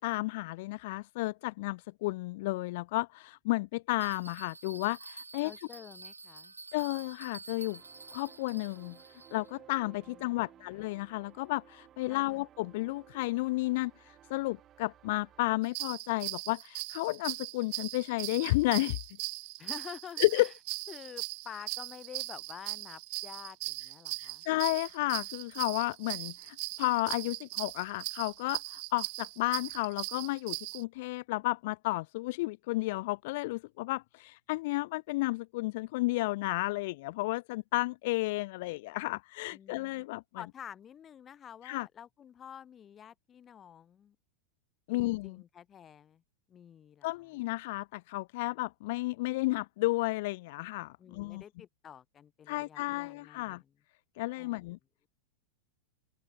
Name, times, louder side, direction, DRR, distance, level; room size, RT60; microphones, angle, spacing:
voice 1, 0.0-5.5 6.7-7.8 8.1-9.0 9.3-19.0 20.2-20.5 24.2-40.2 41.6-41.9 44.9-45.4 47.0-51.4 52.5-53.6 54.2-54.8, left 21 dB, 50° left, 0.4 m, -32 dB
Bell, 4.0-9.6, right 3 dB, 80° right, 1.7 m, -49 dB
voice 2, 5.4-6.5 10.1-10.4 12.1-12.4 19.6-20.5 20.9-24.5 39.5-40.0 40.4-44.2 44.9-46.2 46.5-47.1 51.0-53.7 54.4-54.7, left 9 dB, 25° left, 1.7 m, -49 dB
sound 1, 7.6-15.6, right 11 dB, 30° right, 7.9 m, -58 dB
sound 2, 15.6-30.8, right 36 dB, 45° right, 1.6 m, -39 dB
open air
figure-of-eight pair, 90°, 0 cm